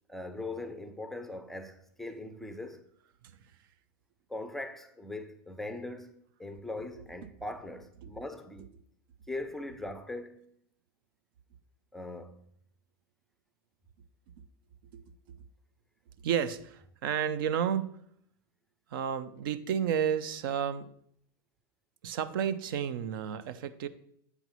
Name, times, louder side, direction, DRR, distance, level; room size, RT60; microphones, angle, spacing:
voice 1, 0.1-2.8 4.3-8.7 9.3-10.5 11.9-12.4, left 2 dB, 5° left, 0.4 m, -40 dB
voice 2, 16.2-18.0 18.9-20.9 22.0-23.9, right 8 dB, 70° right, 0.5 m, -31 dB
8.0 x 5.3 x 3.0 m
supercardioid pair, 130°, 12 cm